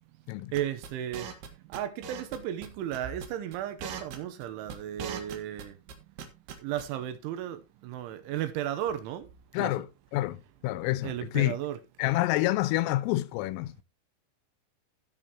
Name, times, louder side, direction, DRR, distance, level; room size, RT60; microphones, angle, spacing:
sound 1, 0.5-1.5 1.7-2.4 2.6-2.7 2.9-3.3 3.5-5.6 5.9-6.8, right 7 dB, 65° right, 3.1 m, -39 dB
voice 1, 0.5-1.3 1.7-5.7 6.6-9.3 9.6-9.8 11.0-11.8, right 11 dB, 80° right, 3.2 m, -34 dB
voice 2, 9.5-9.9 10.1-11.5 12.0-13.7, left 16 dB, 90° left, 3.3 m, -28 dB
16.5 x 6.7 x 3.0 m
omnidirectional pair, 5.8 m